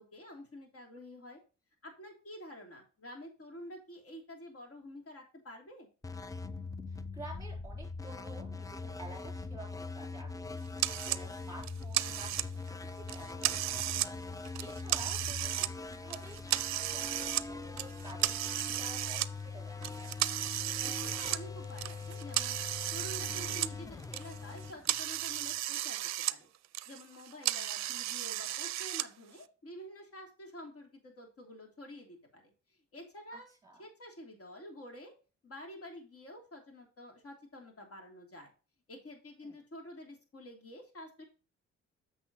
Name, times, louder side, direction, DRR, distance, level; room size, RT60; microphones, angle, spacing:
voice 1, 0.0-1.4 1.8-5.9 20.8-22.6 22.9-26.5 26.9-32.5 32.9-33.5 33.8-35.1 35.4-38.5 38.9-41.2, left 1 dB, 50° left, 2 dB, 3.1 m, -49 dB
sound 1, 6.0-25.6, left 4 dB, 10° left, 0.4 m, -42 dB
voice 2, 6.9-20.2 33.3-33.8 39.4-39.6, right 2 dB, 10° right, 0 dB, 3.6 m, -51 dB
sound 2, 10.8-11.2 11.6-12.7 13.1-14.1 14.5-15.7 16.1-17.5 17.8-19.3 19.8-23.7 24.0-26.4 26.6-29.1, right 14 dB, 65° right, 0.5 m, -34 dB
8.0 x 6.3 x 2.9 m, 0.33 s
cardioid pair, 90°, 30 cm